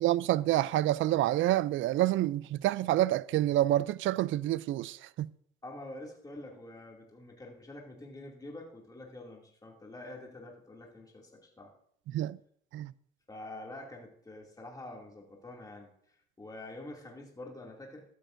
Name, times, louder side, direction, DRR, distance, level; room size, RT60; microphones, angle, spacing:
voice 1, 0.0-5.3 12.1-12.4 12.7-12.9, right 14 dB, 75° right, 0.4 m, -28 dB
voice 2, 5.6-11.7 13.3-15.9 16.4-18.0, left 2 dB, 20° left, 2.5 m, -46 dB
14.5 x 12.0 x 2.6 m
cardioid pair, 90°, 20 cm